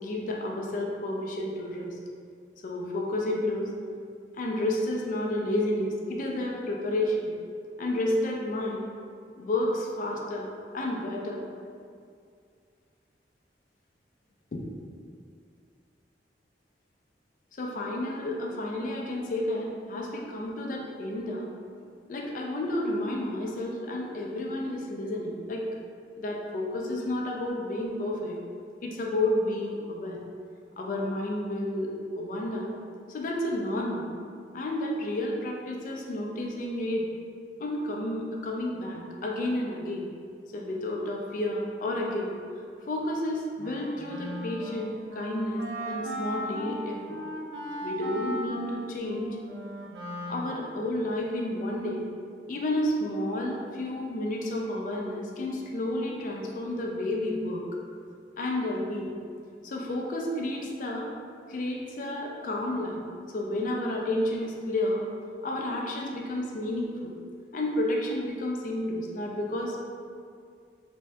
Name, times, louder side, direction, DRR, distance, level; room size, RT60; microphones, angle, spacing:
voice 1, 0.0-2.0 2.6-3.7 4.3-7.3 7.8-8.8 9.4-11.4 14.5-14.6 17.6-21.5 22.1-25.7 26.2-28.4 28.8-30.2 30.8-32.7 33.1-34.1 34.5-37.1 37.6-40.1 40.5-42.3 42.9-47.2 47.8-49.4 50.3-52.0 52.5-57.6 58.4-59.1 59.6-61.1 61.5-63.0 63.3-65.0 65.4-67.1 67.5-69.8, left 1 dB, 50° left, -1 dB, 0.4 m, -31 dB
Wind instrument woodwind instrument, 43.6-50.9, equal, 80° right, 0.5 m, -37 dB
3.3 x 2.6 x 2.2 m, 2.3 s
head